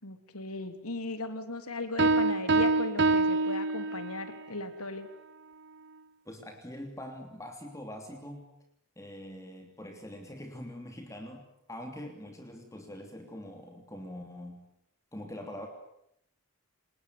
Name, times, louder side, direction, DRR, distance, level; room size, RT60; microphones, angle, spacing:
voice 1, 0.0-5.1, left 2 dB, 90° left, 9 dB, 3.3 m, -37 dB
sound 1, 2.0-4.4, right 3 dB, 50° right, 1.0 m, -26 dB
voice 2, 6.2-8.5 9.0-14.7 15.1-15.7, left 1 dB, 15° left, 4 dB, 3.0 m, -43 dB
29.0 x 20.0 x 9.6 m, 0.78 s
head